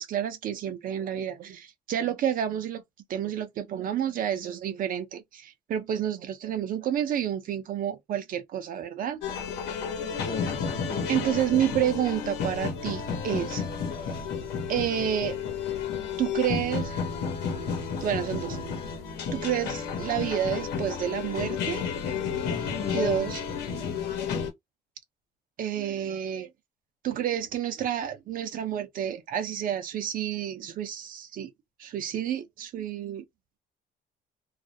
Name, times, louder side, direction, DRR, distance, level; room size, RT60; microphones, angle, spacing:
voice 1, 0.0-2.8 3.1-9.2 10.4-10.5 11.1-13.6 14.7-15.4 16.2-17.0 18.0-19.0 19.3-21.9 22.9-23.4 25.6-26.5 27.0-31.5 31.8-33.2, right 10 dB, 55° right, 0.6 m, -30 dB
sound 1, 9.2-24.5, left 6 dB, 80° left, 0.9 m, -32 dB
voice 2, 10.2-11.2 22.5-23.1, left 5 dB, 25° left, 0.5 m, -37 dB
2.4 x 2.0 x 2.6 m
cardioid pair, 110°, 17 cm